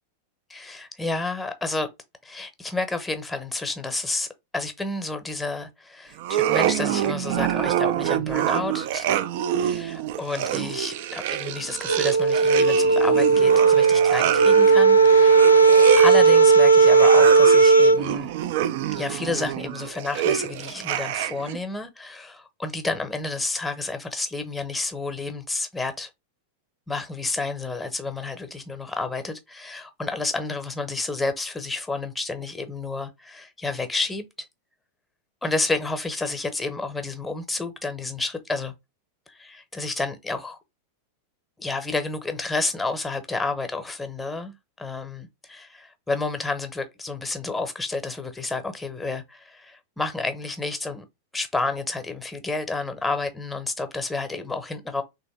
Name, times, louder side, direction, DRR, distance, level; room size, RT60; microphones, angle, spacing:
voice 1, 0.5-1.9 2.2-4.3 4.5-9.1 9.6-15.7 16.0-18.3 18.9-26.1 26.9-34.3 35.4-38.7 39.3-40.6 41.6-51.1 51.3-55.0, left 3 dB, 5° left, 0.8 m, -30 dB
sound 1, 6.2-21.6, right 11 dB, 50° right, 0.4 m, -27 dB
sound 2, 11.9-18.0, right 4 dB, 90° left, 0.5 m, -15 dB
3.3 x 2.9 x 4.3 m
figure-of-eight pair, 90°, 0 cm